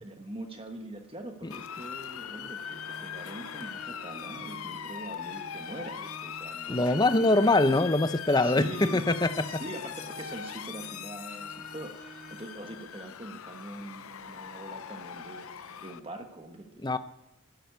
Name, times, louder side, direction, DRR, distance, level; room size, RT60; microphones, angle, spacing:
voice 1, 0.0-7.5 8.4-17.0, right 1 dB, 25° right, 1.2 m, -43 dB
Motor vehicle (road) / Siren, 1.5-16.0, left 8 dB, 75° left, 0.7 m, -41 dB
Organ, 2.5-13.2, equal, 40° left, 5.8 m, -50 dB
voice 2, 6.7-9.3 16.8-17.0, left 2 dB, 20° left, 0.6 m, -23 dB
12.0 x 11.0 x 8.1 m
head